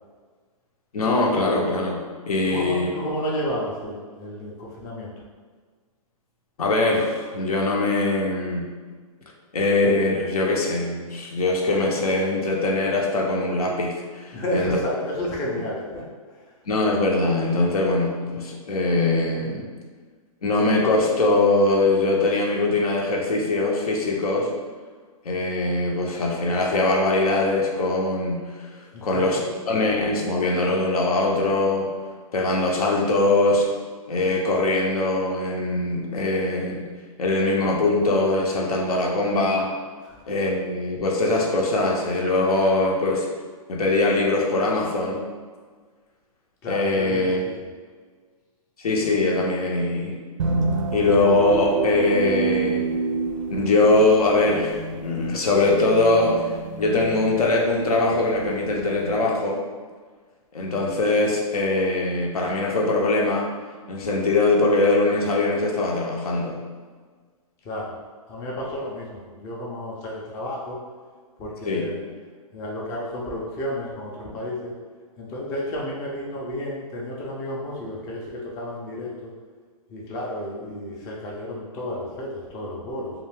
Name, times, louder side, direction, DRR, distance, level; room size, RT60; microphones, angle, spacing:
voice 1, 0.9-2.9 6.6-8.7 9.5-14.8 16.7-19.7 20.4-24.5 25.2-31.9 32.3-33.7 34.1-36.9 37.2-39.7 40.3-43.3 43.7-45.2 46.7-47.4 48.8-50.2 50.9-52.9 53.5-56.5 56.8-59.6 60.5-63.5 63.9-66.6 71.6-71.9, left 2 dB, 85° left, -1 dB, 0.7 m, -22 dB
voice 2, 2.4-5.1 14.3-16.0 28.9-29.4 40.0-40.2 46.6-47.5 67.6-67.9 68.3-70.8 71.4-72.0 72.5-74.7 75.2-79.3 79.9-83.1, left 1 dB, 20° left, -4 dB, 0.4 m, -31 dB
sound 1, 50.4-59.1, right 4 dB, 60° right, 0.4 m, -29 dB
2.4 x 2.3 x 3.2 m, 1.5 s
hypercardioid pair, 150°, 19 cm